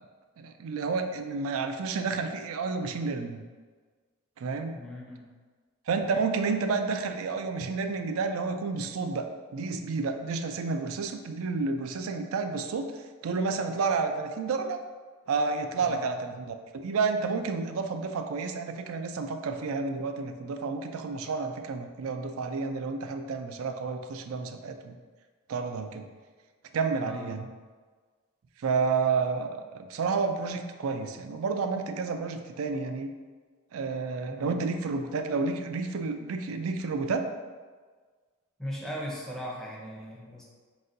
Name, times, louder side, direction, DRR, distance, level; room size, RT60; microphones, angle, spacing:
voice 1, 0.4-3.4 4.4-4.8 5.9-12.9 13.2-14.8 15.3-25.0 25.5-26.0 26.7-27.5 28.6-33.1 33.7-37.2, right 4 dB, 70° right, 7 dB, 0.4 m, -30 dB
voice 2, 4.7-5.3 15.8-16.1 27.0-27.3 34.3-34.6 38.6-40.4, equal, ahead, -5 dB, 0.6 m, -38 dB
4.3 x 4.1 x 2.6 m, 1.5 s
head